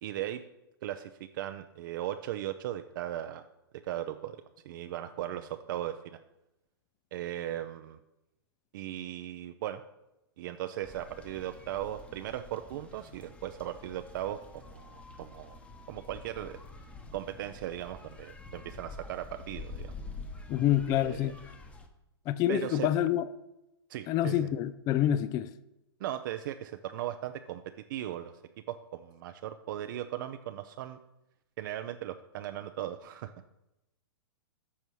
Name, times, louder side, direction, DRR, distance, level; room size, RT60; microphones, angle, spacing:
voice 1, 0.0-0.4 0.8-3.4 3.9-4.4 4.6-6.2 7.1-8.0 8.7-9.8 10.4-15.6 15.9-16.6 17.1-19.9 20.9-21.3 22.5-22.9 23.9-24.5 26.0-27.6 27.9-28.3 28.7-31.0 31.6-33.3, right 12 dB, 55° right, 0.5 m, -37 dB
sound 1, 10.8-21.9, left 3 dB, 10° left, 1.0 m, -47 dB
voice 2, 20.5-21.3 22.3-23.2 24.1-25.5, left 11 dB, 25° left, 0.4 m, -27 dB
14.0 x 5.6 x 3.1 m
hypercardioid pair, 120°, 13 cm